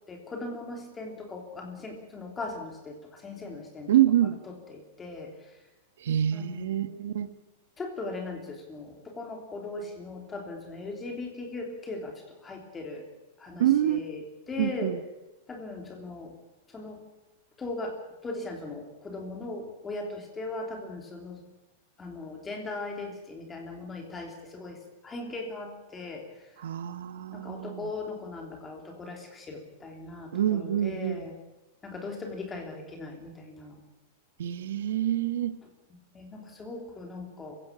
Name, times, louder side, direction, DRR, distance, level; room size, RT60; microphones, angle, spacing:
voice 1, 0.1-3.9 4.5-5.3 6.3-6.9 7.8-13.1 13.4-14.9 15.5-16.3 16.7-17.0 17.6-18.0 18.2-21.4 22.0-26.2 27.3-31.3 31.8-33.7 35.9-37.6, left 3 dB, 10° left, 2 dB, 3.2 m, -39 dB
voice 2, 3.9-4.4 6.0-7.3 13.6-14.1 14.6-15.0 26.6-27.9 30.3-31.3 34.4-35.5, right 11 dB, 70° right, 12 dB, 1.3 m, -26 dB
25.0 x 16.0 x 8.6 m, 1.1 s
supercardioid pair, 180°, 0 cm